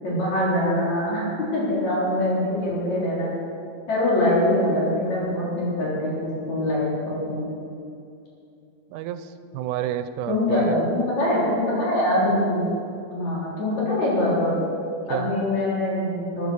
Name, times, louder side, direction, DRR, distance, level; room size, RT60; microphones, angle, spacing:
voice 1, 0.0-3.4 3.9-7.5 10.3-12.6 13.1-14.6 15.1-16.5, left 1 dB, 60° left, -6 dB, 5.0 m, -23 dB
voice 2, 8.9-10.8 15.1-15.3, right 11 dB, 85° right, 11 dB, 2.1 m, -30 dB
14.0 x 10.0 x 6.3 m, 2.6 s
omnidirectional pair, 3.6 m